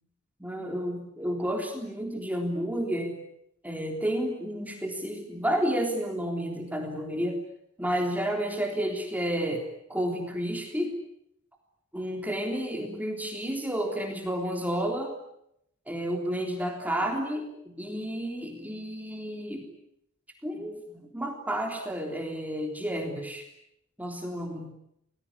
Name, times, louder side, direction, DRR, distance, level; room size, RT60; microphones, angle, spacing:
voice 1, 0.4-3.2 3.6-7.4 7.8-11.0 11.9-15.2 15.9-19.7 20.4-20.8 21.1-23.5 24.0-24.7, equal, 5° right, 2 dB, 3.5 m, -31 dB
28.0 x 20.0 x 9.9 m, 0.79 s
head